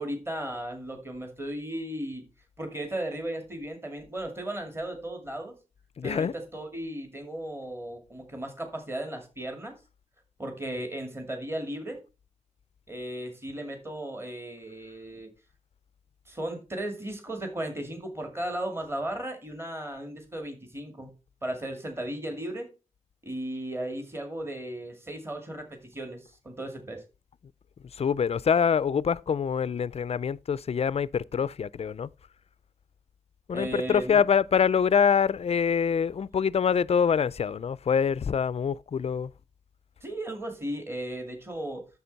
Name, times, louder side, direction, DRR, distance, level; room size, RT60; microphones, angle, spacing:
voice 1, 0.0-2.2 2.6-5.6 6.0-9.7 10.4-12.0 12.9-15.3 16.3-21.1 21.4-22.7 23.2-27.0 33.5-34.2 40.0-41.9, right 1 dB, 20° right, 2.2 m, -35 dB
voice 2, 6.0-6.3 28.0-32.1 33.5-39.3, left 7 dB, 50° left, 0.4 m, -25 dB
10.0 x 7.1 x 4.1 m
wide cardioid pair, 110°, 14 cm